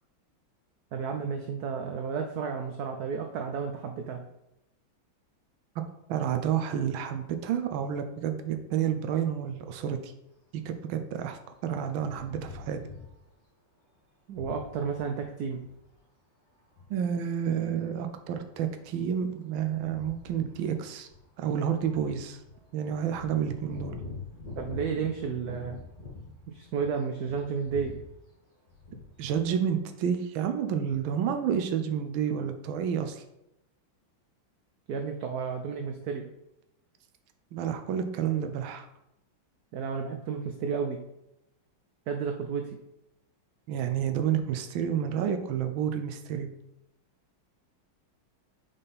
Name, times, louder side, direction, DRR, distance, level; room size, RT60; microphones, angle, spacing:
voice 1, 0.9-4.2 14.3-15.6 24.6-25.8 26.5-28.0 34.9-36.3 39.7-41.0 42.1-42.8, right 6 dB, 70° right, 4 dB, 0.9 m, -32 dB
voice 2, 6.1-10.1 10.6-12.8 16.9-21.1 21.4-22.4 22.7-24.0 29.2-33.2 37.5-38.9 43.7-46.5, right 8 dB, 85° right, 7 dB, 1.4 m, -30 dB
sound 1, 12.1-13.3 14.3-15.9 16.6-16.8 17.3-26.9 27.2-28.1 28.7-29.4, left 3 dB, 50° left, 2.6 m, -45 dB
5.4 x 5.2 x 4.2 m, 0.87 s
omnidirectional pair, 2.2 m